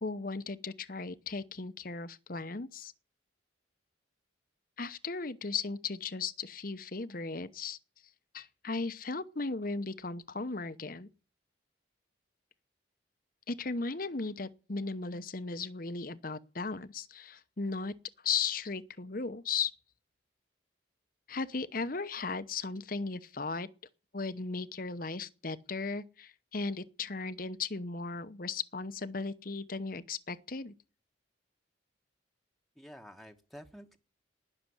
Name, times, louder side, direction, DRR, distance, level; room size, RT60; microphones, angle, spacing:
voice 1, 0.0-2.9 4.8-7.8 8.3-11.1 13.5-17.9 18.2-19.7 21.3-23.7 24.1-30.7, left 4 dB, 45° left, 0.9 m, -36 dB
voice 2, 32.8-34.0, equal, ahead, 1.2 m, -50 dB
20.0 x 6.8 x 9.8 m
head